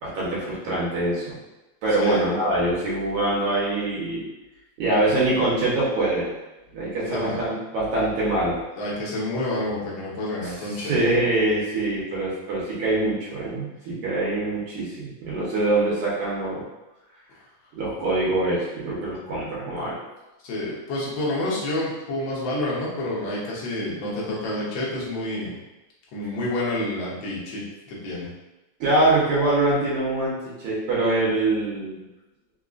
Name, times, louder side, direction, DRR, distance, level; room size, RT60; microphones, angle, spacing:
voice 1, 0.0-1.4 1.8-4.2 4.8-6.3 6.7-8.6 10.4-16.6 17.7-20.0 28.8-32.1, right 2 dB, 75° right, -7 dB, 2.2 m, -24 dB
voice 2, 7.1-7.4 8.8-11.0 20.4-25.6 26.1-28.3, left 1 dB, 75° left, -6 dB, 1.1 m, -28 dB
5.1 x 2.4 x 2.4 m, 1.0 s
omnidirectional pair, 3.4 m